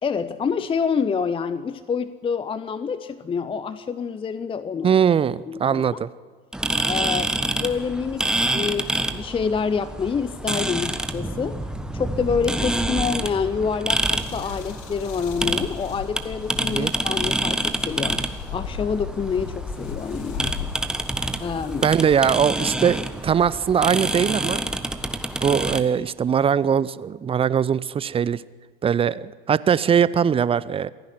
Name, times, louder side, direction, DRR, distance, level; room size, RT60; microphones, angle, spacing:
voice 1, 0.0-5.0 5.5-6.0 6.9-11.6 11.9-18.2 18.5-20.5 21.4-21.9, left 6 dB, 20° left, 15 dB, 0.7 m, -27 dB
voice 2, 4.8-6.1 16.7-16.9 21.8-24.6 25.4-28.4 28.8-30.9, right 7 dB, 20° right, 19 dB, 0.6 m, -21 dB
sound 1, 6.5-25.8, right 1 dB, 5° right, 1.3 m, -27 dB
sound 2, 14.1-23.3 24.0-24.4 25.1-25.2 25.7-26.4, left 8 dB, 60° left, 1.6 m, -38 dB
27.5 x 10.5 x 10.0 m, 1.5 s
figure-of-eight pair, 75°, 30 cm